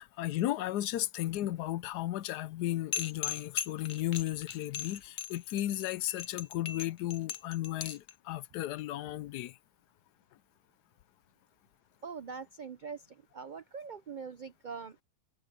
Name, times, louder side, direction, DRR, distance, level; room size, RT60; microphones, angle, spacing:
voice 1, 0.0-9.6, left 14 dB, 85° left, 1.2 m, -34 dB
sound 1, 2.9-8.1, left 10 dB, 55° left, 0.9 m, -38 dB
voice 2, 12.0-13.0 13.3-15.0, right 5 dB, 65° right, 0.4 m, -42 dB
omnidirectional pair, 1.7 m